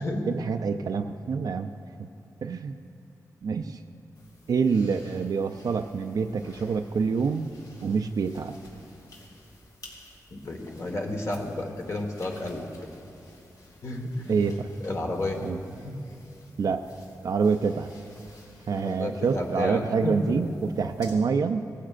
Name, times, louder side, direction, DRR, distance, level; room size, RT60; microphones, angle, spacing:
voice 1, 0.0-1.7 2.4-2.8 3.4-3.8 4.5-7.5 7.8-8.5 14.3-14.7 15.4-15.6 16.6-16.9 17.2-17.9 18.7-20.5 20.8-21.6, right 5 dB, 65° right, 5 dB, 0.4 m, -26 dB
sound 1, 4.2-21.1, left 2 dB, 70° left, 3.1 m, -53 dB
voice 2, 10.3-12.7 13.8-14.4 14.8-15.4 15.7-15.9 18.8-20.3, left 1 dB, 45° left, 2 dB, 1.4 m, -31 dB
18.0 x 15.0 x 2.5 m, 2.5 s
wide cardioid pair, 125°, 7 cm